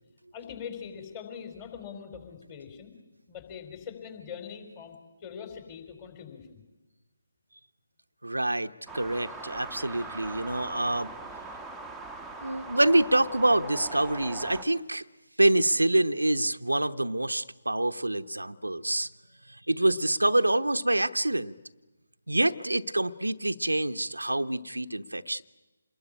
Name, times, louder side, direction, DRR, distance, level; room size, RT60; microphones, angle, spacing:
voice 1, 0.3-3.0 3.3-6.6, left 7 dB, 20° left, 6 dB, 4.3 m, -42 dB
voice 2, 8.2-11.1 12.4-15.0 15.4-19.1 19.5-21.5 22.3-25.4, right 1 dB, 75° right, 9 dB, 1.0 m, -26 dB
sound 1, 8.9-14.6, right 3 dB, ahead, 1.3 m, -41 dB
27.5 x 21.0 x 10.0 m, 1.2 s
figure-of-eight pair, 145°, 0 cm